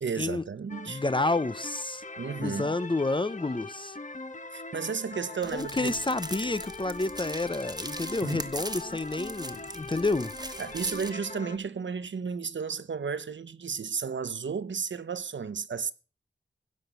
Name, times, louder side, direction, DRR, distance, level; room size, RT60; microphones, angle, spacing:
voice 1, 0.0-1.0 2.2-2.7 4.5-5.9 8.2-8.5 10.6-15.9, right 6 dB, 85° right, 0.8 m, -33 dB
sound 1, 0.7-11.6, left 3 dB, 40° left, 1.2 m, -41 dB
voice 2, 0.9-2.0 2.4-4.0 5.5-10.3, left 2 dB, 25° left, 0.6 m, -29 dB
sound 2, 5.4-11.1, right 2 dB, 20° right, 1.5 m, -41 dB
16.0 x 5.9 x 8.0 m
wide cardioid pair, 80°, 19 cm